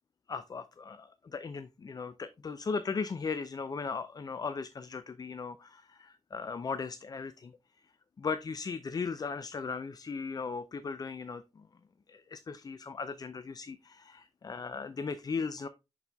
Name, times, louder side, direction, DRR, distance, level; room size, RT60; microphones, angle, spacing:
voice 1, 0.3-7.5 8.2-11.4 12.1-15.7, left 5 dB, 35° left, 0.4 m, -37 dB
10.5 x 4.1 x 2.2 m
wide cardioid pair, 120°, 11 cm